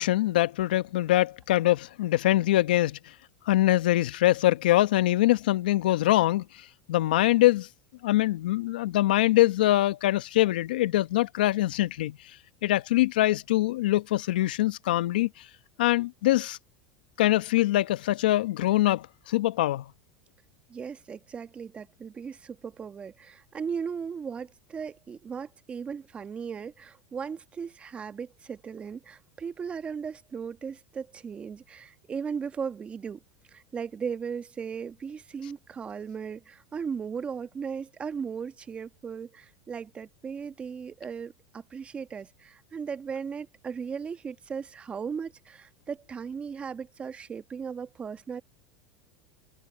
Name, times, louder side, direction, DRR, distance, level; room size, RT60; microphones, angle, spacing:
voice 1, 0.0-3.0 3.5-6.4 6.9-7.7 8.0-12.2 12.6-15.3 15.8-16.6 17.2-19.8, left 16 dB, 80° left, 0.9 m, -23 dB
voice 2, 20.7-33.2 33.5-48.4, right 6 dB, 25° right, 1.4 m, -37 dB
hypercardioid pair, 105°, 5 cm